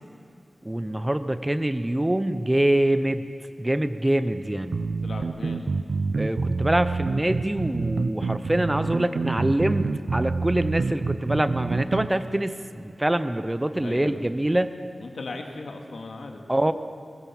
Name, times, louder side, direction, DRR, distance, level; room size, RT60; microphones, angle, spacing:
voice 1, 0.6-3.2 3.6-4.8 6.2-14.7 16.5-16.7, right 1 dB, 15° right, 11 dB, 0.9 m, -25 dB
sound 1, 4.7-12.1, right 4 dB, 70° right, 0.9 m, -27 dB
voice 2, 5.0-5.7 13.8-14.2 15.0-16.4, left 3 dB, 80° left, 3 dB, 2.4 m, -37 dB
22.0 x 21.5 x 7.3 m, 2.4 s
wide cardioid pair, 105°, 0 cm